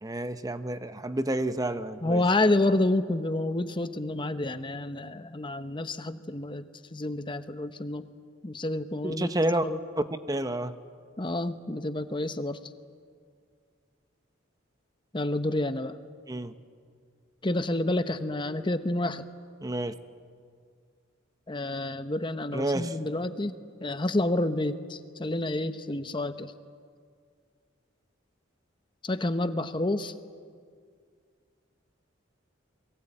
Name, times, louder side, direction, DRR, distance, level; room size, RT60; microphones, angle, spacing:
voice 1, 0.0-2.2 9.0-9.7 10.3-10.7 16.3-16.5 19.6-19.9 22.5-22.9, right 1 dB, 20° right, 10 dB, 0.8 m, -29 dB
voice 2, 2.0-8.1 8.4-9.3 9.6-9.8 11.2-12.6 15.1-16.0 17.4-19.3 21.5-23.5 23.8-26.5 29.0-30.1, left 2 dB, 25° left, 10 dB, 0.8 m, -29 dB
29.0 x 22.5 x 8.9 m, 2.1 s
head